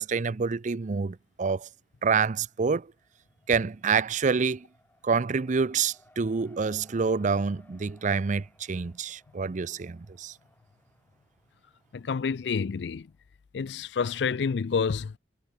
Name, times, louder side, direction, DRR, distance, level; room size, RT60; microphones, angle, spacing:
voice 1, 0.0-1.7 2.0-2.9 3.5-4.7 5.0-10.3, right 5 dB, 45° right, 0.5 m, -27 dB
Race car auto racing, 0.8-1.6 1.9-13.2, left 1 dB, 10° left, 6.4 m, -63 dB
voice 2, 11.9-13.1 13.5-15.2, left 5 dB, 70° left, 0.4 m, -28 dB
head